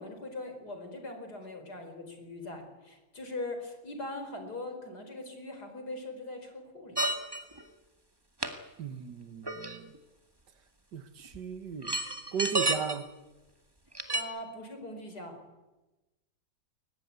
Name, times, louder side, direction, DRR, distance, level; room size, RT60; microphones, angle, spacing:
voice 1, 0.0-7.0 14.1-15.4, left 2 dB, 70° left, 5.1 m, -41 dB
sound 1, 7.0-7.6 8.4-8.5 9.5-10.0 11.3-11.4 11.8-13.0 13.9-14.2, right 2 dB, 15° right, 1.9 m, -30 dB
voice 2, 8.8-9.9 10.9-12.0 12.3-13.1, right 7 dB, 90° right, 2.0 m, -36 dB
22.0 x 19.5 x 9.6 m
omnidirectional pair, 1.8 m